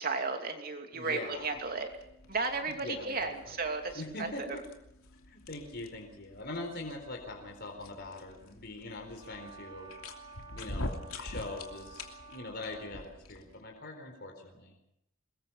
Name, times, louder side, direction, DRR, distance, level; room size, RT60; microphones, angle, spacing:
voice 1, 0.0-1.9 2.3-4.6, right 4 dB, 45° right, 5 dB, 2.8 m, -34 dB
voice 2, 0.9-1.6 2.6-3.6 3.9-4.6 5.3-9.9 10.6-14.8, left 2 dB, 50° left, 2 dB, 4.1 m, -42 dB
sound 1, 1.3-13.6, left 1 dB, 75° left, 2.9 m, -46 dB
Brass instrument, 9.1-13.0, right 4 dB, 20° right, 6.0 m, -51 dB
24.5 x 21.5 x 5.8 m, 0.79 s
head